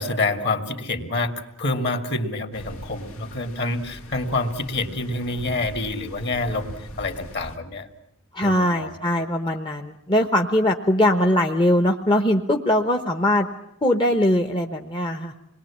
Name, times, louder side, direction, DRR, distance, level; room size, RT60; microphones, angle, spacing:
voice 1, 0.0-7.9 8.4-8.9, left 2 dB, 50° left, 6 dB, 2.6 m, -27 dB
sound 1, 2.5-7.6, equal, 75° left, 2.1 m, -41 dB
voice 2, 8.3-13.5 13.8-15.3, left 1 dB, 20° left, 4 dB, 1.1 m, -21 dB
28.0 x 21.5 x 8.6 m, 0.84 s
head